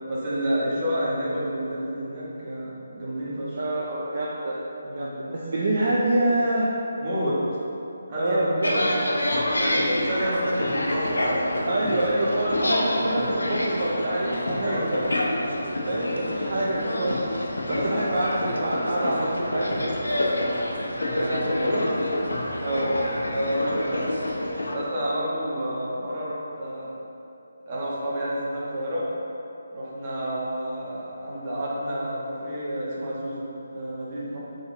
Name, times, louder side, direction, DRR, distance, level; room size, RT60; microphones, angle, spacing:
voice 1, 0.1-3.6 4.8-5.1 7.0-7.4 8.1-8.8 9.6-11.9 14.6-15.1 15.4-15.7 16.5-16.7 17.7-18.0 21.1-21.9 23.3-24.2 24.7-26.9 27.7-29.1 29.7-34.4, equal, 30° right, -7 dB, 0.7 m, -30 dB
voice 2, 3.6-4.6 4.9-6.7 8.2-9.0 11.7-15.0 15.9-17.3 17.7-20.1 22.6-23.0, right 1 dB, 45° right, -5 dB, 0.4 m, -26 dB
sound 1, 8.6-24.8, left 1 dB, 70° left, 0.4 m, -27 dB
3.8 x 2.6 x 3.2 m, 2.8 s
figure-of-eight pair, 150°, 0 cm